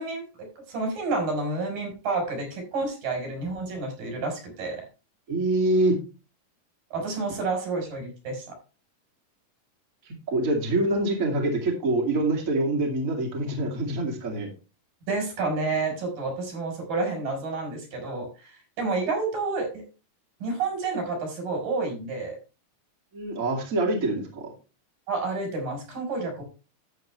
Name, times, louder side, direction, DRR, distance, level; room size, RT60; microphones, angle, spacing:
voice 1, 0.0-4.8 6.9-8.4 15.1-19.8 20.4-22.4 25.1-26.4, right 3 dB, 75° right, 2 dB, 5.8 m, -30 dB
voice 2, 5.3-6.0 10.1-14.5 23.1-24.5, right 2 dB, 25° right, 0 dB, 2.5 m, -25 dB
11.5 x 8.3 x 3.2 m, 0.31 s
omnidirectional pair, 3.9 m